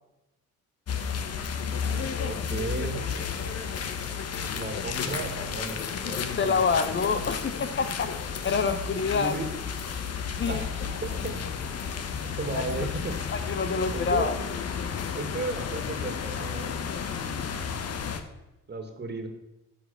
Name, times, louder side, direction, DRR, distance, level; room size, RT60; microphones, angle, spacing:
sound 1, 0.9-18.2, left 6 dB, 55° left, 1.1 m, -32 dB
voice 1, 2.2-3.0 4.5-6.8 9.1-9.5 10.5-11.4 12.2-13.1 13.9-14.3 15.1-16.7 18.7-19.3, right 3 dB, 35° right, 6 dB, 2.1 m, -35 dB
voice 2, 6.4-9.4 10.4-10.7 12.5-12.9 13.3-14.4, left 5 dB, 40° left, 10 dB, 0.8 m, -27 dB
9.5 x 5.9 x 6.9 m, 0.98 s
cardioid pair, 90°, 30 cm